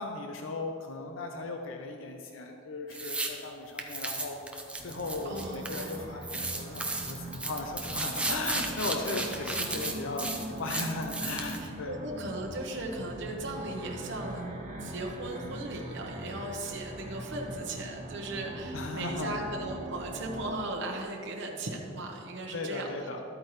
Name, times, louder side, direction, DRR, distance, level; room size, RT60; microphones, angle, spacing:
voice 1, 0.0-10.3 10.6-12.0 18.7-19.4 22.5-23.2, left 3 dB, 85° left, 4 dB, 0.7 m, -37 dB
sound 1, 2.9-3.3 3.8-6.0 6.2-11.6, right 2 dB, 5° right, 0.8 m, -34 dB
sound 2, 4.8-20.5, right 1 dB, 40° right, 1.5 m, -42 dB
voice 2, 5.2-6.1 11.6-14.5 14.8-22.9, right 2 dB, 65° right, 0 dB, 1.1 m, -37 dB
12.5 x 8.7 x 3.2 m, 2.7 s
head